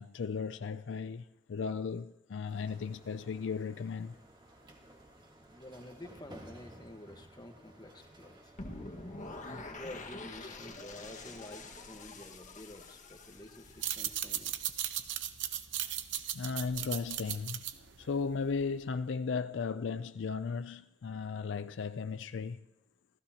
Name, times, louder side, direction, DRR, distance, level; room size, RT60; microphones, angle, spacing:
voice 1, 0.0-4.1 16.3-17.6 18.0-22.6, left 5 dB, 75° left, 0.4 m, -36 dB
sound 1, 2.4-12.0, right 1 dB, 25° right, 1.7 m, -56 dB
voice 2, 5.5-8.5 9.5-14.5, left 1 dB, 20° left, 1.3 m, -50 dB
sound 2, 8.6-14.6, left 2 dB, 45° left, 1.7 m, -46 dB
sound 3, 13.7-18.8, right 11 dB, 70° right, 0.8 m, -37 dB
28.0 x 15.0 x 2.9 m
head